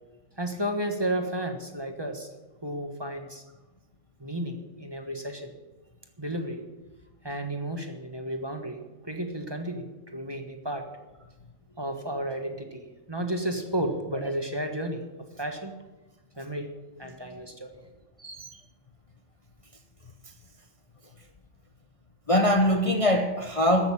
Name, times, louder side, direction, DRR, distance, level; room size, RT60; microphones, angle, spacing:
voice 1, 0.4-2.3 2.6-3.4 4.2-5.5 6.2-6.6 7.2-10.9 11.8-12.8 13.1-15.0 15.4-15.7 16.4-16.7 17.0-17.7, right 1 dB, 20° right, 4 dB, 1.4 m, -32 dB
voice 2, 22.3-23.9, equal, 30° left, 4 dB, 0.9 m, -23 dB
14.5 x 6.6 x 9.9 m, 1.1 s
omnidirectional pair, 1.3 m